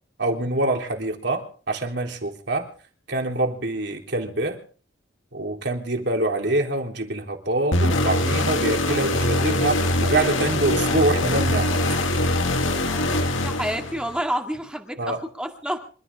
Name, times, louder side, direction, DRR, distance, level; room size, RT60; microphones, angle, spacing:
voice 1, 0.2-2.7 3.1-4.6 5.3-11.8 13.1-13.3 15.0-15.2, right 2 dB, 60° right, 2 dB, 3.5 m, -25 dB
sound 1, 7.7-14.2, left 1 dB, 90° left, 2.0 m, -23 dB
voice 2, 13.4-15.8, equal, 5° right, 3 dB, 2.0 m, -28 dB
26.5 x 13.5 x 3.6 m, 0.42 s
head